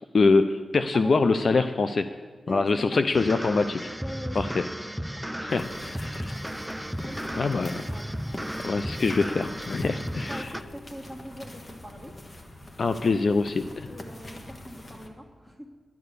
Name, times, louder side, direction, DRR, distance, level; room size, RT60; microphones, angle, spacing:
voice 1, 0.1-2.0 2.5-3.9 4.4-4.6 5.4-6.3 7.3-7.8 8.6-10.5 12.8-13.9, left 3 dB, 55° left, 9 dB, 0.5 m, -24 dB
voice 2, 0.9-1.7 2.5-3.4 4.0-4.4 5.2-5.5 5.9-6.4 6.9-7.6 7.9-8.6 9.8-12.1 13.9-15.7, equal, 10° left, 0 dB, 2.2 m, -43 dB
sound 1, 3.1-10.6, equal, 5° right, 0.4 m, -34 dB
sound 2, 5.5-15.1, left 1 dB, 35° left, 1.6 m, -43 dB
11.0 x 10.5 x 6.8 m, 1.5 s
cardioid pair, 75°, 0 cm